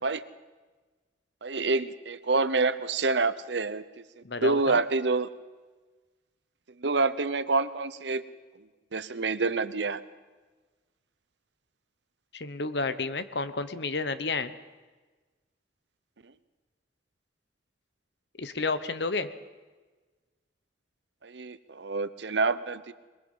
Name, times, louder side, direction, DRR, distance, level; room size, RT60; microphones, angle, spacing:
voice 1, 1.4-3.8 4.2-5.3 6.8-8.2 8.9-10.0 21.2-22.9, right 3 dB, 80° right, 14 dB, 0.8 m, -27 dB
voice 2, 4.2-4.8 12.3-14.5 18.4-19.3, left 3 dB, 70° left, 12 dB, 1.1 m, -31 dB
22.0 x 22.0 x 5.6 m, 1.3 s
head